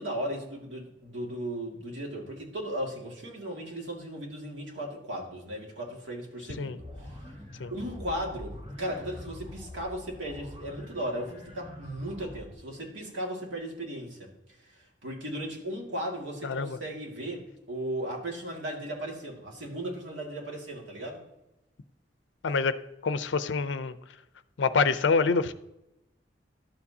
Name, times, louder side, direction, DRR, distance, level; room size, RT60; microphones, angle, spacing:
voice 1, 0.0-7.2 7.7-21.2, right 1 dB, 85° right, 0 dB, 2.1 m, -36 dB
sound 1, 6.8-12.5, left 1 dB, 30° right, 2.2 m, -45 dB
voice 2, 16.4-16.8 22.4-22.8 23.0-24.0 24.6-25.5, left 4 dB, 75° left, 13 dB, 0.5 m, -26 dB
12.0 x 7.1 x 2.8 m, 0.91 s
head